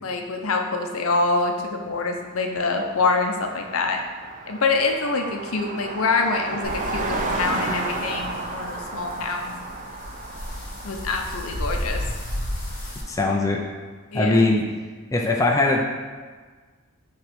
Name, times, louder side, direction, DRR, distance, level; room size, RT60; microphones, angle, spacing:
voice 1, 0.0-4.0 4.5-9.5 10.8-12.0 14.1-14.5, left 3 dB, 75° left, 3 dB, 0.7 m, -25 dB
Car passing by, 2.1-2.2 2.4-13.4, right 2 dB, 35° right, 0.5 m, -33 dB
sound 1, 6.6-13.0, left 1 dB, 40° left, 1.0 m, -33 dB
voice 2, 13.1-13.6 14.1-14.7 15.1-15.8, left 2 dB, 15° left, 0 dB, 0.5 m, -20 dB
5.8 x 3.2 x 5.2 m, 1.4 s
head